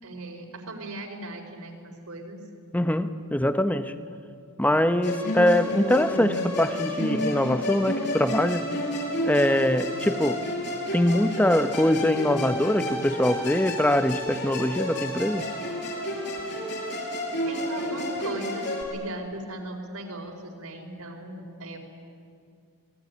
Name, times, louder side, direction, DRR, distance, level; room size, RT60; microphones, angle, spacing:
voice 1, 0.0-2.4 17.4-21.8, right 2 dB, 75° right, 2 dB, 4.8 m, -38 dB
voice 2, 2.7-3.9 4.6-8.7 9.2-10.4 10.9-15.4, left 1 dB, 5° left, 10 dB, 1.0 m, -23 dB
Musical instrument, 5.0-18.8, left 1 dB, 50° left, 6.6 m, -31 dB
27.5 x 21.0 x 9.8 m, 2.4 s
head